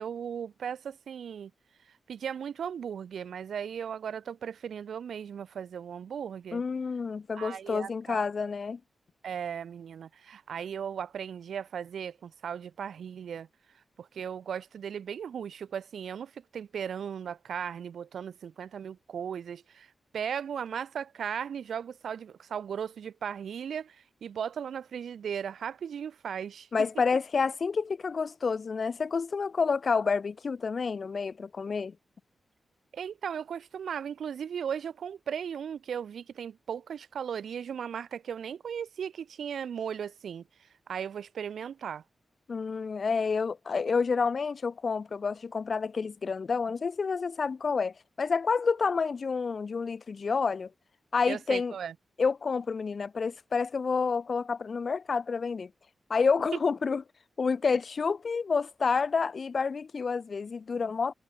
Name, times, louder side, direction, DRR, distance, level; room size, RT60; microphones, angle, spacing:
voice 1, 0.0-1.5 2.1-6.6 7.3-8.3 9.2-13.5 14.0-26.7 32.9-42.0 51.3-51.9, right 8 dB, 85° right, 3.0 m, -37 dB
voice 2, 6.5-8.8 26.7-32.0 42.5-50.7 51.1-51.7 52.2-55.7 56.1-57.0 57.4-61.1, left 5 dB, 45° left, 0.6 m, -29 dB
wide cardioid pair, 130°, 0 cm